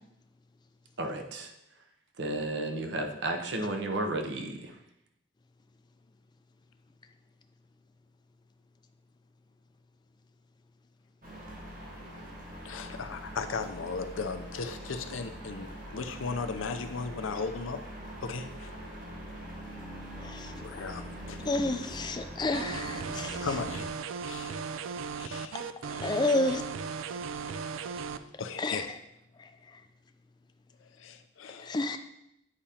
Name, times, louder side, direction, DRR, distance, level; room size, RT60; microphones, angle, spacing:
voice 1, 1.0-1.5 2.2-4.5, right 2 dB, 65° right, 4 dB, 0.7 m, -32 dB
sound 1, 11.2-23.9, equal, 40° right, 1.2 m, -43 dB
voice 2, 12.6-17.8 18.2-18.7 20.6-21.5 23.4-23.9 24.2-24.6 25.2-25.6 28.4-28.8 30.8-31.8, left 4 dB, 85° left, 8 dB, 0.6 m, -36 dB
voice 3, 20.2-20.5 21.5-23.5 25.8-26.6 28.6-28.9 31.6-32.0, left 2 dB, 20° left, 8 dB, 0.4 m, -30 dB
sound 2, 22.5-28.2, right 5 dB, 85° right, 0.4 m, -37 dB
8.7 x 4.9 x 2.8 m, 0.80 s
head